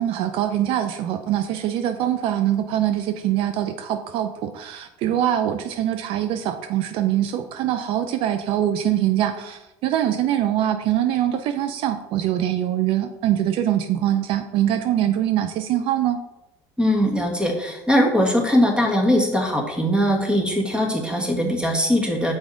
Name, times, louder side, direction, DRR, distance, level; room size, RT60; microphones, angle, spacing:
voice 1, 0.0-16.2, right 11 dB, 65° right, 9 dB, 0.5 m, -23 dB
voice 2, 16.8-22.3, equal, 10° right, 1 dB, 1.6 m, -20 dB
6.3 x 4.7 x 3.8 m, 0.94 s
supercardioid pair, 80°, 10 cm